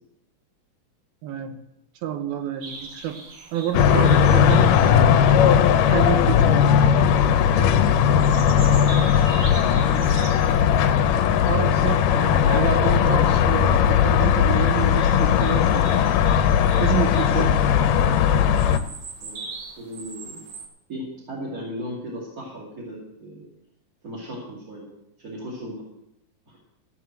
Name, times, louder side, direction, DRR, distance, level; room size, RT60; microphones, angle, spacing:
voice 1, 1.2-1.6 2.0-3.2 3.5-5.4 5.9-6.7 7.1-7.7 11.5-16.1 16.8-17.6, right 10 dB, 90° right, 7 dB, 3.0 m, -29 dB
sound 1, 2.6-20.7, right 3 dB, 55° right, 2.5 m, -43 dB
sound 2, 3.7-18.8, left 8 dB, 80° left, 2.1 m, -18 dB
voice 2, 9.6-10.6 12.6-13.3 13.7-14.0 17.9-18.2 19.2-19.5 19.8-20.4 20.9-23.4 24.0-24.8 25.2-25.8 26.5-26.6, right 1 dB, 25° right, -6 dB, 2.5 m, -37 dB
16.0 x 5.6 x 7.6 m, 0.83 s
omnidirectional pair, 4.2 m